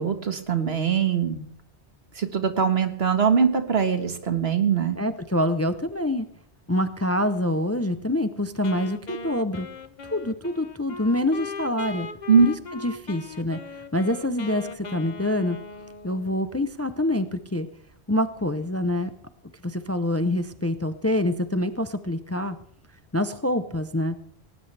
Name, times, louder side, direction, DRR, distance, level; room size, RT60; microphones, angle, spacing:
voice 1, 0.0-1.4 2.2-5.0 12.3-12.5, right 6 dB, 70° right, 7 dB, 1.8 m, -22 dB
voice 2, 5.0-6.3 6.7-9.7 10.1-12.1 12.4-12.5 12.8-15.6 16.0-17.7 18.1-19.1 19.6-22.6 23.1-24.2, left 1 dB, 15° left, 10 dB, 0.6 m, -26 dB
Wind instrument woodwind instrument, 8.6-16.5, left 4 dB, 45° left, 1.0 m, -39 dB
19.0 x 18.0 x 3.4 m, 0.63 s
omnidirectional pair, 1.1 m